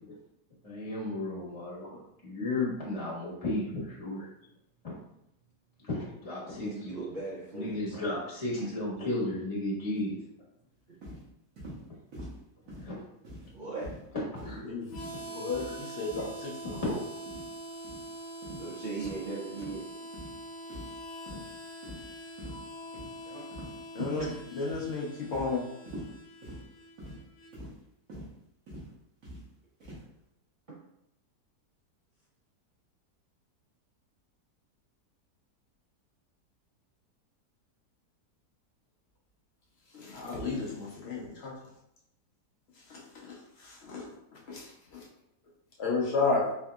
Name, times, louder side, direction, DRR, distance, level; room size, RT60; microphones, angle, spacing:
voice 1, 0.6-4.3 4.8-4.9 5.8-7.0 7.5-10.2 12.8-12.9 14.1-14.6, left 2 dB, 25° left, -6 dB, 0.8 m, -34 dB
voice 2, 6.6-8.0 8.6-8.7 13.5-13.9 18.6-19.8 23.3-23.4, right 3 dB, 75° right, -7 dB, 0.4 m, -38 dB
sound 1, 11.0-11.2 11.6-11.8 12.1-12.4 12.7-12.9 13.2-13.5 13.8-14.0 14.4-14.6 14.9-15.2 15.5-15.7 16.1-16.3 16.6-16.9 17.3-17.5 17.8-18.0 18.4-18.6 19.0-19.2 19.6-19.8 20.1-20.3 20.7-21.0 21.2-21.4 21.8-22.1 22.4-22.6 22.9-23.1 23.5-23.8 24.1-24.4 24.7-24.9 25.3-25.5 25.9-26.1 26.4-26.6 27.0-27.2 27.5-27.7 28.1-28.3 28.7-28.9 29.2-29.4 29.8-30.0, equal, 55° right, 1.6 m, -44 dB
Harmonica, 14.9-27.5, right 1 dB, 85° left, 1.3 m, -44 dB
voice 3, 15.3-17.0 23.9-25.6 39.9-41.6 42.9-45.1 45.8-46.5, left 3 dB, 60° left, -2 dB, 0.6 m, -33 dB
4.3 x 2.7 x 2.3 m, 0.79 s
omnidirectional pair, 1.7 m